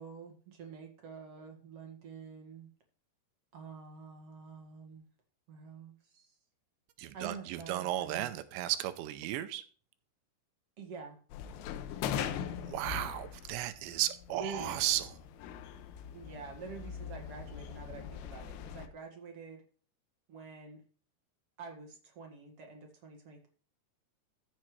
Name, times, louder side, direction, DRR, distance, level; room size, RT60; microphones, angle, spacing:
voice 1, 0.0-2.7 3.5-5.1 5.5-6.4 7.1-8.3 10.8-11.2 14.3-14.7 16.1-19.6 20.3-20.8 21.6-23.5, right 5 dB, 50° right, 1.8 m, -47 dB
voice 2, 7.0-9.6 12.6-15.0, right 14 dB, 80° right, 2.9 m, -34 dB
sound 1, 11.3-18.9, left 8 dB, 80° left, 3.0 m, -41 dB
15.0 x 7.5 x 3.2 m
omnidirectional pair, 5.1 m